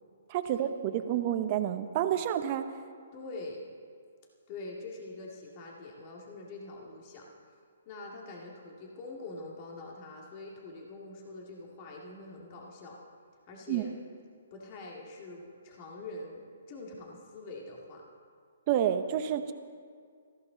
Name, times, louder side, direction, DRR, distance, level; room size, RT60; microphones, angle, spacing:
voice 1, 0.3-2.7 13.7-13.8 18.7-19.5, right 10 dB, 35° right, 9 dB, 0.9 m, -29 dB
voice 2, 3.1-3.6 4.5-7.3 7.9-13.0 13.5-13.9 14.5-18.0, left 2 dB, 35° left, -2 dB, 2.3 m, -44 dB
18.5 x 15.0 x 4.0 m, 2.1 s
hypercardioid pair, 140°, 0 cm